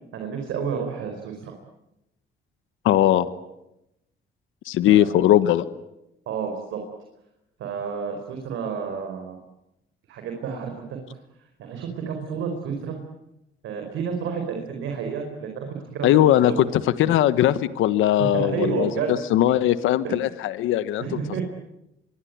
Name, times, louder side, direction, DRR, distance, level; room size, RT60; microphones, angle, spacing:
voice 1, 0.1-1.5 4.9-5.2 6.3-6.8 7.6-9.4 10.1-11.0 11.6-13.0 13.6-16.1 16.5-16.6 18.2-19.1 20.0-20.2 21.0-21.4, right 6 dB, 85° right, 4 dB, 4.7 m, -30 dB
voice 2, 2.8-3.3 4.6-5.6 16.0-21.4, left 12 dB, 90° left, 13 dB, 1.2 m, -20 dB
26.0 x 23.0 x 9.5 m, 0.88 s
cardioid pair, 90°, 20 cm